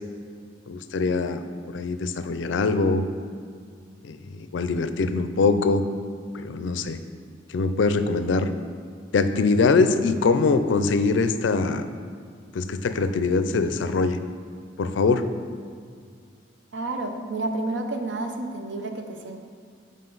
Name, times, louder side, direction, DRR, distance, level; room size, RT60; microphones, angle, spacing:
voice 1, 0.7-3.0 4.0-5.8 6.3-7.0 7.5-8.5 9.1-11.9 12.5-14.2 14.8-15.2, left 4 dB, 75° left, 10 dB, 0.4 m, -23 dB
voice 2, 16.7-19.4, right 2 dB, 70° right, 5 dB, 0.7 m, -30 dB
7.7 x 5.1 x 3.9 m, 2.1 s
head